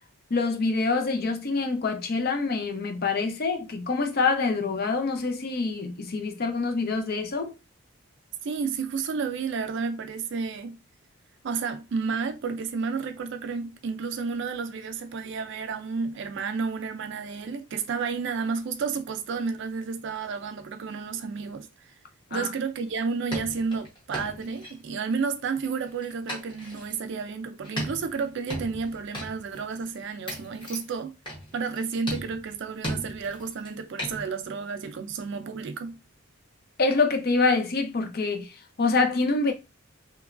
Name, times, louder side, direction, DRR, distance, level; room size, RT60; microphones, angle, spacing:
voice 1, 0.3-7.5 22.3-22.5 36.8-39.5, left 3 dB, 45° left, 0.5 m, -26 dB
voice 2, 8.4-10.8 11.4-21.7 22.3-31.1 31.5-36.0, right 5 dB, 60° right, 0.4 m, -31 dB
sound 1, 22.9-23.0 23.3-25.1 25.6-26.9 27.6-29.6 29.9-30.0 30.3-30.9 31.3-31.8 32.1-33.7 34.0-34.2, equal, 20° left, 0.9 m, -36 dB
2.9 x 2.2 x 2.4 m
head